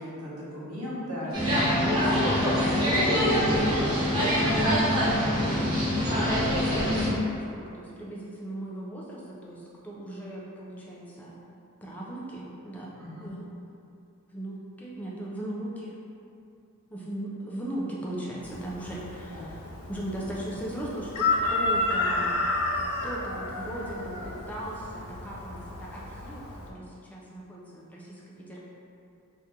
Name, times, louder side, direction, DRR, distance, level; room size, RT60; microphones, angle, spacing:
voice 1, 0.0-1.4 1.8-2.1 13.0-13.3 19.3-19.5, left 1 dB, 85° right, -7 dB, 0.9 m, -37 dB
sound 1, 1.3-7.1, equal, 20° right, 1.0 m, -24 dB
voice 2, 2.8-5.7 6.3-11.4 11.8-12.9 13.2-13.5 14.3-16.0 16.9-22.4 23.0-28.6, right 1 dB, 5° left, -5 dB, 0.4 m, -38 dB
Chicken rooster, 18.4-26.7, left 2 dB, 85° left, 0.4 m, -31 dB
2.8 x 2.5 x 3.5 m, 2.6 s
head